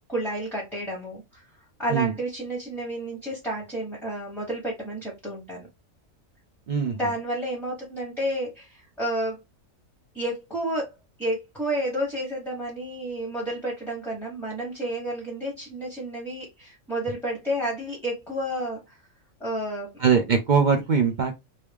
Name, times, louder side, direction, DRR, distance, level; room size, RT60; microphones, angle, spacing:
voice 1, 0.1-1.4 1.8-5.7 6.9-9.4 10.1-10.9 11.2-19.0 19.4-19.9, right 1 dB, ahead, -4 dB, 1.1 m, -31 dB
voice 2, 20.0-21.4, right 6 dB, 85° right, 3 dB, 0.4 m, -21 dB
3.1 x 2.6 x 3.4 m, 0.21 s
omnidirectional pair, 1.5 m